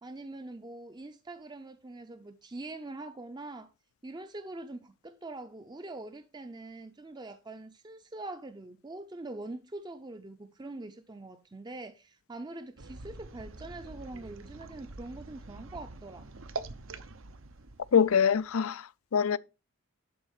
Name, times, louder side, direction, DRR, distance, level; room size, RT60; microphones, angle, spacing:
voice 1, 0.0-3.7 4.0-16.3, right 2 dB, 20° right, 0.6 m, -43 dB
sound 1, 12.8-18.6, right 3 dB, 65° right, 0.9 m, -44 dB
voice 2, 17.9-19.4, left 7 dB, 75° left, 0.5 m, -25 dB
11.5 x 4.0 x 6.5 m
head